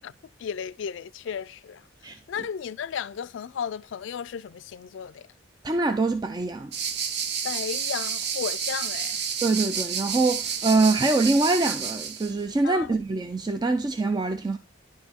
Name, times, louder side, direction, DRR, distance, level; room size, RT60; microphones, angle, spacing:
voice 1, 0.4-5.3 7.4-9.3 12.6-12.9, left 7 dB, 70° left, 0.4 m, -34 dB
voice 2, 5.6-6.7 9.4-14.6, right 3 dB, 20° right, 0.4 m, -24 dB
sound 1, 6.7-12.3, right 7 dB, 55° right, 0.8 m, -30 dB
10.5 x 4.5 x 4.3 m
head